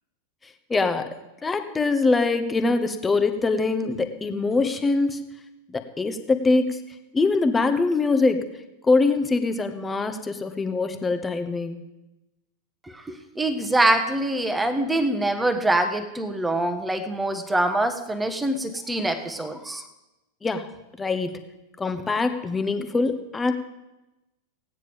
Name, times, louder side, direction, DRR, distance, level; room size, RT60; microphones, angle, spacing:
voice 1, 0.7-1.1 1.4-5.2 5.7-6.8 7.1-8.5 8.8-11.8 20.4-20.7 21.0-21.4 21.8-23.5, left 3 dB, 15° left, 8 dB, 1.1 m, -23 dB
voice 2, 12.8-19.8, right 1 dB, 5° right, 7 dB, 1.3 m, -24 dB
16.5 x 9.6 x 5.2 m, 1.0 s
figure-of-eight pair, 90°, 0 cm